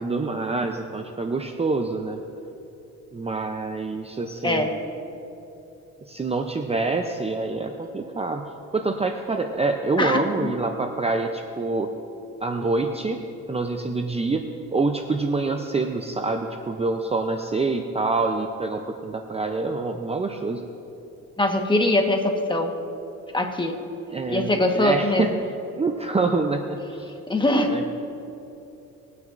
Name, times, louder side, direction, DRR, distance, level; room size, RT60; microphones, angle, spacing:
voice 1, 0.0-2.2 3.1-4.7 6.1-8.4 8.7-11.9 12.4-13.2 13.5-20.6 24.1-25.3 25.8-27.1 27.7-27.9, right 3 dB, 20° right, 5 dB, 0.6 m, -26 dB
voice 2, 10.0-10.5 21.4-22.7 23.3-23.8 24.3-25.3 27.3-27.7, left 1 dB, 15° left, 3 dB, 1.4 m, -22 dB
20.0 x 9.3 x 2.6 m, 2.9 s
cardioid pair, 90°, 30 cm